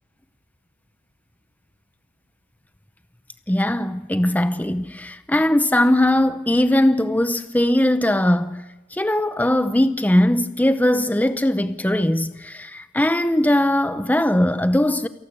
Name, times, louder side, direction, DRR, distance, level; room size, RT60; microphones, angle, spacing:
voice 1, 3.5-8.6 8.9-15.1, left 1 dB, 10° left, 0.7 m, -20 dB
28.5 x 19.0 x 6.7 m
head